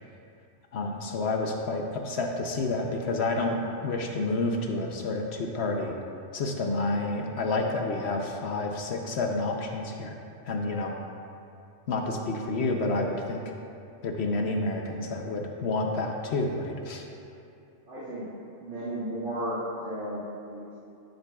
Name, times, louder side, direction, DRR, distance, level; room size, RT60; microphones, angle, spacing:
voice 1, 0.7-5.9 6.3-10.2 10.5-11.0 11.9-13.5 14.0-17.1, left 2 dB, 65° left, 2 dB, 0.9 m, -29 dB
voice 2, 17.9-18.3 18.6-20.7, right 1 dB, 90° right, -13 dB, 2.3 m, -34 dB
13.0 x 7.8 x 2.3 m, 2.6 s
omnidirectional pair, 1.2 m